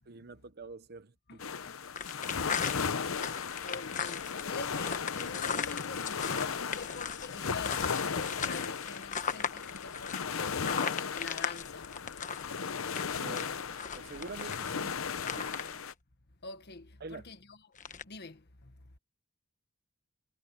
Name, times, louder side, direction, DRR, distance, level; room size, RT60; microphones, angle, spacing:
voice 1, 0.1-1.5 13.1-13.5 13.9-15.0 15.3-15.8 17.0-17.2, right 3 dB, 50° right, 0.9 m, -46 dB
sound 1, 1.4-15.9, left 6 dB, 90° left, 0.8 m, -36 dB
sound 2, 2.0-15.9 17.8-18.0, left 6 dB, 40° left, 1.2 m, -38 dB
voice 2, 3.6-11.9 13.2-13.5 16.4-17.6 18.0-18.7, left 4 dB, 55° left, 1.6 m, -46 dB
head